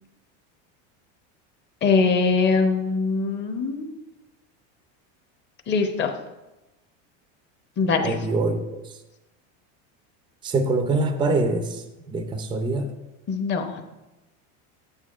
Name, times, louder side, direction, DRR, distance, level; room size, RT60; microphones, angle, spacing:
voice 1, 1.8-3.9 5.7-6.1 7.8-8.1 13.3-13.8, left 4 dB, 30° left, 5 dB, 0.8 m, -22 dB
voice 2, 8.0-9.0 10.4-12.9, right 2 dB, 15° right, 7 dB, 0.4 m, -25 dB
9.0 x 9.0 x 2.5 m, 1.0 s
cardioid pair, 150°, 36 cm